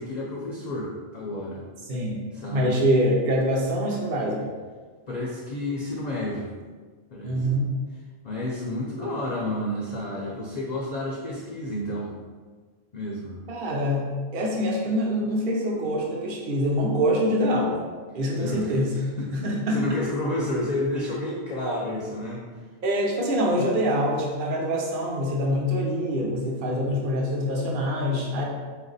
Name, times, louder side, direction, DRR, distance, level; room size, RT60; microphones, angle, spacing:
voice 1, 0.0-1.6 2.3-2.8 5.1-6.5 7.1-7.6 8.2-12.1 12.9-13.4 18.4-18.8 19.2-22.4 26.6-26.9, left 1 dB, 50° left, -4 dB, 0.5 m, -30 dB
voice 2, 1.9-2.2 2.5-4.5 7.2-7.7 13.5-17.8 18.1-18.9 19.3-19.8 22.8-28.4, equal, 50° right, -2 dB, 0.8 m, -25 dB
4.0 x 2.5 x 4.0 m, 1.5 s
omnidirectional pair, 1.3 m